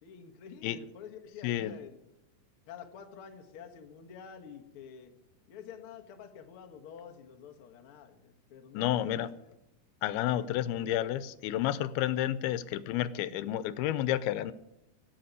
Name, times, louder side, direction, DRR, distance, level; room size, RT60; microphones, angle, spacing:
voice 1, 0.0-2.0 2.7-5.1 5.5-9.5 10.3-10.5, left 7 dB, 60° left, 4 dB, 1.5 m, -49 dB
voice 2, 1.4-1.7 8.7-9.3 10.0-14.5, left 12 dB, 90° left, 16 dB, 2.6 m, -30 dB
13.0 x 8.6 x 9.5 m, 0.89 s
omnidirectional pair, 4.3 m